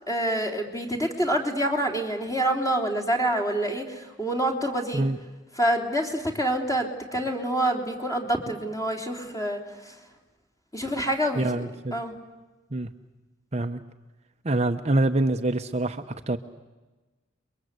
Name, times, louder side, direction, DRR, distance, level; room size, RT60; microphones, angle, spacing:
voice 1, 0.1-5.1 5.5-10.0 10.7-12.1, right 1 dB, 20° left, 3 dB, 3.4 m, -27 dB
voice 2, 11.4-12.0 12.7-12.9 13.5-13.8 14.4-16.4, right 2 dB, 35° right, 7 dB, 0.9 m, -25 dB
29.5 x 23.0 x 8.2 m, 1.2 s
head